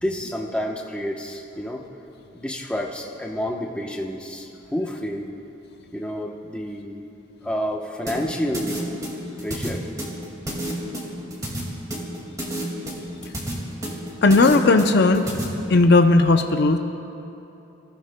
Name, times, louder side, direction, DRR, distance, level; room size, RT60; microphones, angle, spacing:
voice 1, 0.0-1.8 2.3-5.3 5.9-7.0 7.4-8.9 9.4-9.9 12.2-12.3, equal, 5° left, -1 dB, 0.9 m, -29 dB
sound 1, 8.1-15.4, right 1 dB, 15° right, 2.1 m, -30 dB
voice 2, 14.2-15.2 15.7-16.8, left 3 dB, 55° left, 6 dB, 0.6 m, -16 dB
26.5 x 15.0 x 2.2 m, 3.0 s
head